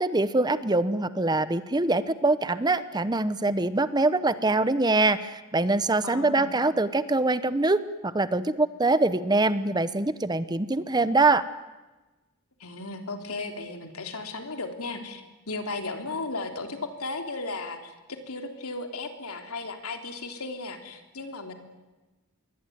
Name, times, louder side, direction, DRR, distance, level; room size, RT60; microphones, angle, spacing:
voice 1, 0.0-11.5, right 2 dB, 20° right, 14 dB, 0.9 m, -24 dB
voice 2, 6.0-6.5 12.6-21.5, left 3 dB, 75° left, 5 dB, 3.5 m, -35 dB
26.0 x 22.5 x 9.4 m, 1.1 s
head